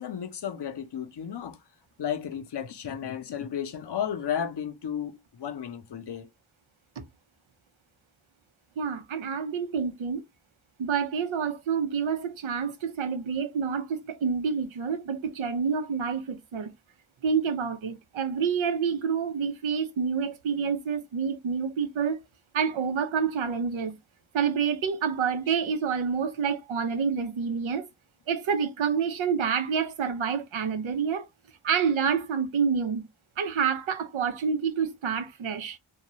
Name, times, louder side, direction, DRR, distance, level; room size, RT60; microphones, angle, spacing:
voice 1, 0.0-1.6 2.0-6.3, left 9 dB, 60° left, 0.7 m, -33 dB
voice 2, 8.8-10.2 10.8-16.7 17.2-22.2 22.5-24.0 24.3-27.9 28.3-31.3 31.6-33.1 33.4-35.8, right 6 dB, 90° right, 0.7 m, -28 dB
2.7 x 2.3 x 3.0 m
cardioid pair, 45°, 46 cm